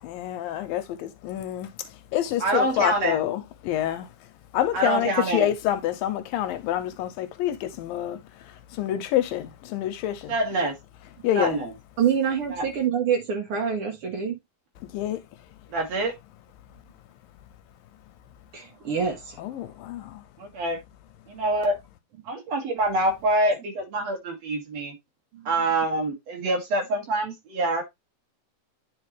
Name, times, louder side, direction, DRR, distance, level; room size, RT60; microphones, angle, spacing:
voice 1, 0.0-4.1 4.5-10.4 11.2-11.6 14.9-15.2 19.4-20.2, left 12 dB, 80° left, 2.2 m, -27 dB
voice 2, 2.4-3.2 4.7-5.5 10.3-10.7 11.3-11.7 12.6-12.7 15.7-16.1 20.4-20.8 21.3-21.8 22.3-24.9 25.4-27.8, right 2 dB, 50° right, 3.0 m, -25 dB
voice 3, 12.0-14.4 18.5-19.6 25.3-25.5, right 7 dB, 80° right, 1.2 m, -26 dB
9.6 x 4.5 x 3.2 m
omnidirectional pair, 4.3 m